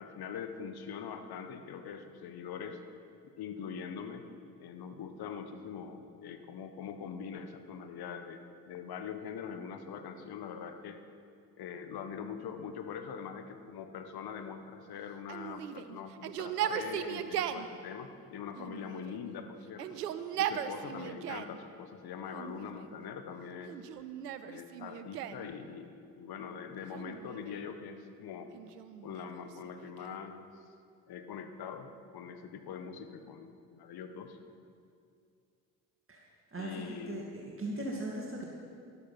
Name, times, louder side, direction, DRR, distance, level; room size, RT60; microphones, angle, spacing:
voice 1, 0.0-2.8 3.2-4.2 4.6-11.0 11.6-20.0 20.4-23.7 24.4-28.5 29.0-30.5 31.1-34.4 36.5-37.2 37.7-37.9, left 7 dB, 55° left, 8 dB, 1.3 m, -43 dB
Yell, 15.3-17.7 18.6-19.3 19.7-21.6 22.3-23.0 23.7-25.5 26.8-27.7 28.5-30.3, right 10 dB, 90° right, 0.6 m, -38 dB
voice 2, 36.5-38.4, right 2 dB, 25° right, -2 dB, 2.3 m, -39 dB
13.0 x 13.0 x 5.9 m, 2.3 s
figure-of-eight pair, 45°, 46 cm